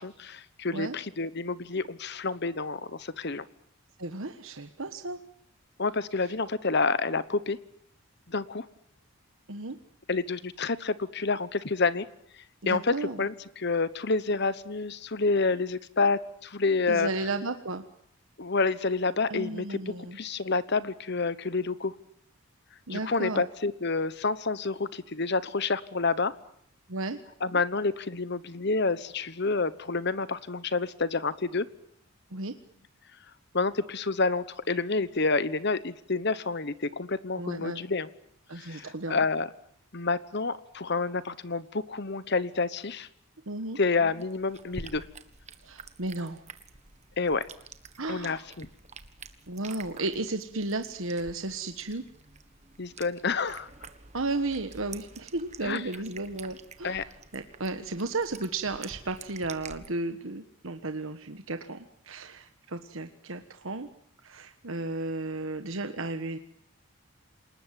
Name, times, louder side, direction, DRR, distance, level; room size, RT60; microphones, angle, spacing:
voice 1, 0.0-3.4 5.8-7.6 8.3-8.7 10.1-12.1 12.7-17.1 18.4-21.9 22.9-26.3 27.4-31.7 33.5-38.1 38.5-39.5 39.9-43.1 43.8-45.1 47.2-47.4 48.1-48.7 52.8-53.7 55.6-55.8 56.8-57.0, left 3 dB, 50° left, 16 dB, 1.0 m, -28 dB
voice 2, 4.0-5.2 9.5-9.8 12.6-13.3 16.9-17.8 19.3-20.2 22.9-23.4 26.9-27.2 32.3-32.5 37.3-37.8 38.5-39.2 43.5-43.8 45.6-46.4 48.0-48.4 49.5-52.0 54.1-57.0 57.3-63.9 64.2-66.4, right 2 dB, 65° right, 8 dB, 1.4 m, -34 dB
sound 1, 44.0-59.9, right 4 dB, 30° right, 1.5 m, -48 dB
28.0 x 19.5 x 9.2 m, 0.69 s
head